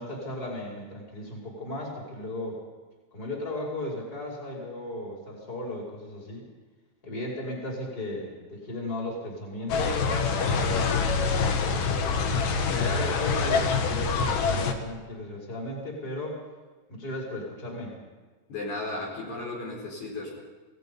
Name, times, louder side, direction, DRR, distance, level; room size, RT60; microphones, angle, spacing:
voice 1, 0.0-2.6 3.1-6.4 7.0-10.0 10.5-10.9 11.5-16.4 16.9-18.0, left 1 dB, 25° left, -3 dB, 5.9 m, -36 dB
sound 1, 9.7-14.7, left 5 dB, 80° left, 3.4 m, -25 dB
voice 2, 18.5-20.4, left 2 dB, 60° left, -2 dB, 6.0 m, -35 dB
27.5 x 18.5 x 5.5 m, 1.3 s
omnidirectional pair, 3.7 m